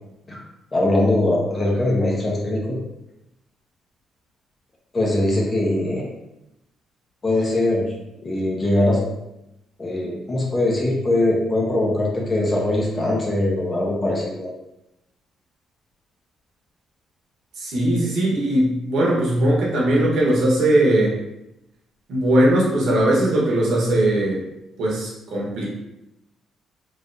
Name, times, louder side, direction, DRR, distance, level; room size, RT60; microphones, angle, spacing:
voice 1, 0.7-2.8 4.9-6.0 7.2-7.9 8.2-9.0 9.8-14.5, left 1 dB, 30° left, -3 dB, 1.2 m, -21 dB
voice 2, 17.6-21.1 22.1-24.4 24.8-25.7, right 1 dB, 80° right, -4 dB, 1.3 m, -19 dB
3.7 x 3.3 x 2.7 m, 0.88 s
cardioid pair, 90°, 0 cm